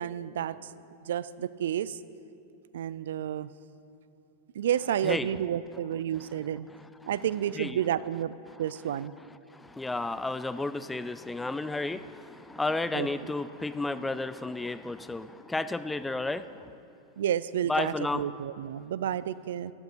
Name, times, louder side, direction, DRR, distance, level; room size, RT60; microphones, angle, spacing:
voice 1, 0.0-2.0 2.7-3.5 4.5-6.7 7.0-9.1 12.9-13.1 17.2-19.7, right 10 dB, 85° right, 17 dB, 0.4 m, -31 dB
voice 2, 9.5-16.7 17.7-18.2, left 2 dB, 5° left, 13 dB, 0.4 m, -32 dB
14.0 x 10.5 x 5.2 m, 2.7 s
supercardioid pair, 140°, 0 cm